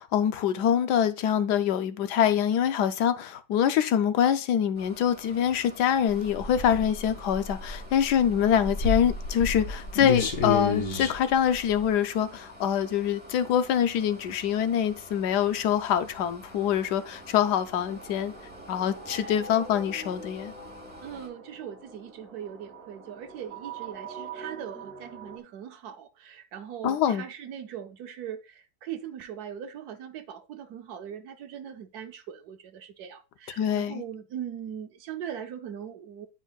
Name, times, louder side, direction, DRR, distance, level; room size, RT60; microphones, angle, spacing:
voice 1, 0.0-18.3 18.7-20.5 26.8-27.2 33.6-34.0, left 9 dB, 75° left, 1.1 m, -25 dB
sound 1, 4.7-21.3, equal, 5° right, 1.2 m, -49 dB
sound 2, 6.1-11.9, left 4 dB, 55° left, 1.3 m, -30 dB
sound 3, 16.7-25.4, right 3 dB, 40° right, 1.2 m, -44 dB
voice 2, 21.0-36.3, right 9 dB, 70° right, 1.1 m, -40 dB
9.6 x 4.5 x 2.3 m
omnidirectional pair, 1.8 m